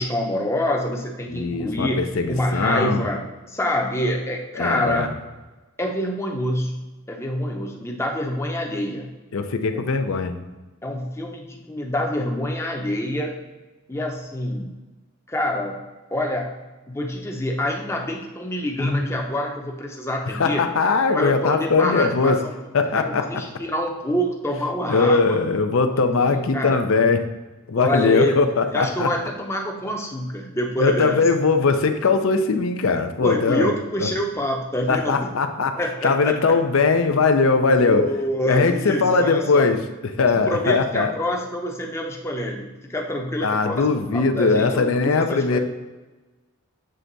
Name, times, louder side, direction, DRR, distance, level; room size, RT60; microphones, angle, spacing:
voice 1, 0.0-3.2 3.5-5.1 5.8-9.1 9.7-9.8 10.8-13.4 13.9-14.7 15.3-15.8 16.1-16.5 16.9-20.6 21.1-22.5 22.9-25.4 26.2-26.8 27.8-28.4 28.7-31.2 33.2-35.3 35.8-36.6 37.8-39.7 40.5-44.9 45.3-45.6, left 1 dB, 10° left, 0 dB, 0.7 m, -26 dB
voice 2, 1.3-3.0 4.6-5.1 9.3-10.4 20.3-22.4 22.7-23.4 24.9-27.2 27.7-29.1 30.8-33.7 34.9-38.0 38.5-39.8 40.2-41.1 43.4-45.6, left 4 dB, 60° left, 8 dB, 0.5 m, -20 dB
7.7 x 3.4 x 3.9 m, 1.2 s
head